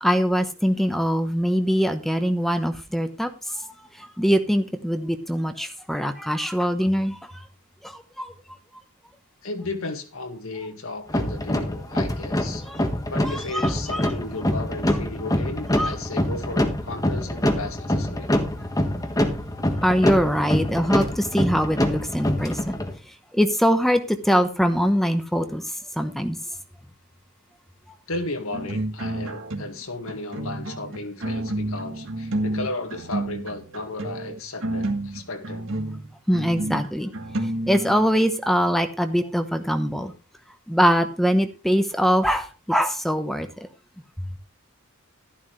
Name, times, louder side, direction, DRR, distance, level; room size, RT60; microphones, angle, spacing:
voice 1, 0.0-3.3 4.0-7.4 7.8-8.3 12.7-12.8 13.2-14.0 15.8-15.9 19.8-22.8 23.3-25.6 26.0-26.4 36.3-37.1 37.7-40.1 40.7-43.5, equal, ahead, 0.9 m, -23 dB
voice 2, 9.4-12.6 13.1-18.3 28.1-35.7, left 2 dB, 70° left, 1.9 m, -34 dB
sound 1, 11.1-22.9, left 1 dB, 15° left, 1.5 m, -25 dB
sound 2, 28.5-29.8 30.1-38.2, right 1 dB, 65° right, 1.7 m, -30 dB
12.0 x 11.0 x 3.2 m
head